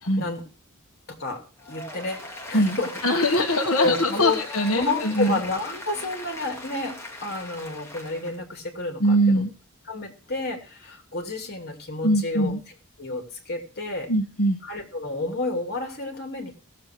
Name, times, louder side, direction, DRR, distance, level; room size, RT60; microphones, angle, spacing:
voice 1, 1.1-1.4 1.7-2.2 2.5-2.9 3.3-3.4 3.8-4.4 4.7-9.4 9.9-12.5 13.0-14.1 14.6-16.5, left 2 dB, 50° left, 3 dB, 3.2 m, -30 dB
Applause, 1.6-8.4, left 1 dB, 10° left, 2.7 m, -39 dB
voice 2, 3.0-5.4 9.0-9.5 12.0-12.6 14.1-14.6, equal, 70° left, 1 dB, 1.5 m, -22 dB
18.5 x 7.5 x 4.7 m, 0.36 s
head